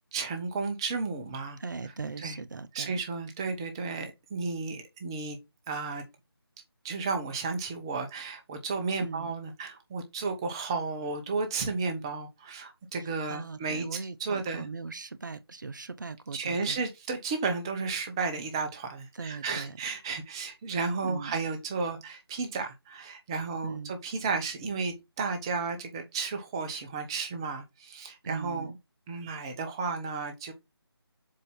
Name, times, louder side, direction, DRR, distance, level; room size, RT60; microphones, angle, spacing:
voice 1, 0.1-1.6 2.2-2.4 2.7-5.4 5.7-6.0 6.8-14.6 16.3-28.7 29.1-30.5, right 4 dB, 10° right, 0.7 m, -33 dB
voice 2, 1.6-3.0 9.0-9.4 13.0-16.8 19.1-19.8 21.0-21.4 23.6-24.0 28.2-28.8, right 4 dB, 50° right, 0.8 m, -39 dB
7.5 x 2.7 x 5.4 m
figure-of-eight pair, 165°, 13 cm